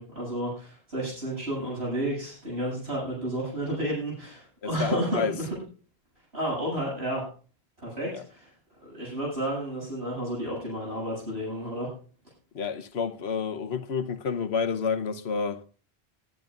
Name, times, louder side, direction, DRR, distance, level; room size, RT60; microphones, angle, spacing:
voice 1, 0.0-5.5 6.3-7.2 7.8-8.5 8.8-11.9, right 1 dB, 90° right, 7.9 m, -31 dB
voice 2, 4.6-5.3 8.1-8.2 12.5-15.6, left 5 dB, 85° left, 1.2 m, -29 dB
21.0 x 10.5 x 2.5 m
omnidirectional pair, 1.0 m